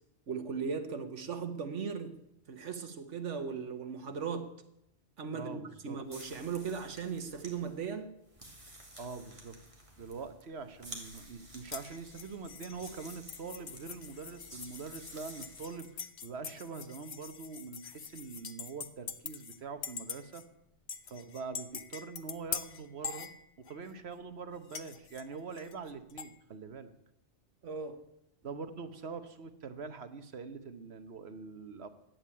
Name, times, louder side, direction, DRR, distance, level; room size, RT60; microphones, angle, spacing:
voice 1, 0.3-2.1 2.5-4.5 5.2-8.1 27.6-28.0, right 6 dB, 80° right, 8 dB, 1.6 m, -37 dB
voice 2, 5.3-6.0 9.0-9.6 10.0-20.4 21.1-23.3 23.7-26.9 28.4-31.9, right 5 dB, 65° right, 10 dB, 1.3 m, -44 dB
sound 1, 6.0-15.9, right 1 dB, 25° right, 2.5 m, -52 dB
sound 2, 11.7-19.6 19.8-20.4 20.9-23.9 24.7-26.3, left 7 dB, 55° left, 1.0 m, -44 dB
12.0 x 8.6 x 8.6 m, 0.81 s
omnidirectional pair, 1.2 m